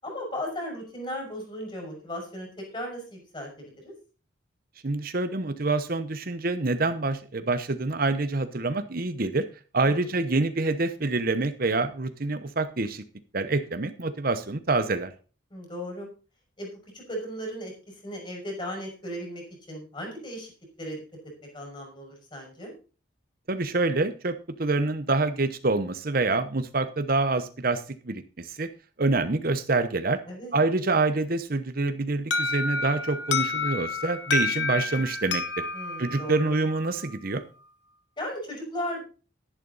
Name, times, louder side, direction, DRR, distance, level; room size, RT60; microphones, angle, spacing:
voice 1, 0.0-3.9 9.8-10.1 15.5-16.1 16.6-16.7 16.9-20.5 20.8-21.0 21.5-22.7 30.3-30.6 35.7-36.5 38.2-39.0, equal, 25° left, 1 dB, 5.6 m, -36 dB
voice 2, 4.8-9.5 9.7-13.0 13.3-15.1 23.5-24.3 24.6-28.7 29.0-30.2 30.5-35.6 36.0-37.4, right 3 dB, 45° right, 10 dB, 0.9 m, -26 dB
Alarm, 32.3-37.1, left 3 dB, 60° left, 1.3 m, -29 dB
11.5 x 11.0 x 4.1 m, 0.36 s
head